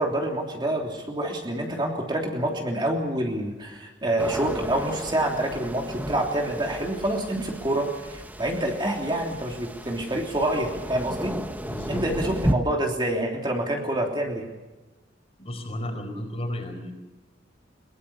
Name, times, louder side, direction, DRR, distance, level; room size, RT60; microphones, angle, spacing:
voice 1, 0.0-11.3 11.9-14.5, right 1 dB, 25° right, 1 dB, 3.2 m, -27 dB
sound 1, 4.2-12.5, right 1 dB, 10° right, 1.1 m, -33 dB
voice 2, 11.6-12.0 15.4-16.9, left 1 dB, 35° left, 5 dB, 4.7 m, -33 dB
22.0 x 22.0 x 7.0 m, 1.1 s
head